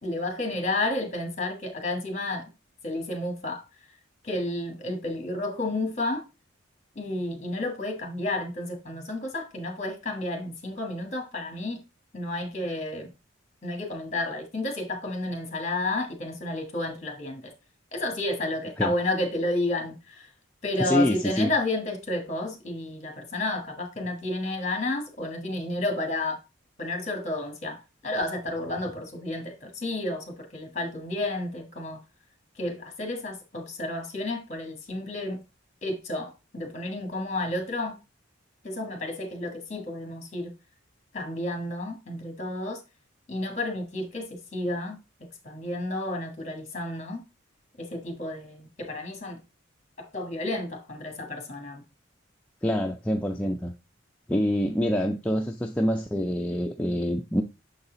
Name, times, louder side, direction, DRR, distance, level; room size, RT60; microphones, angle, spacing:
voice 1, 0.0-2.5 2.8-3.6 4.2-6.2 6.9-11.8 12.1-13.1 13.6-17.5 17.9-20.3 20.6-26.4 26.8-32.0 32.6-35.4 35.8-38.0 38.6-40.5 41.1-42.8 43.3-45.0 45.4-47.2 47.8-49.4 50.1-51.8, left 2 dB, 35° left, 1.5 m, -31 dB
voice 2, 20.8-21.5 52.6-53.7 54.3-57.4, equal, 5° left, 0.3 m, -26 dB
6.9 x 4.1 x 3.8 m
head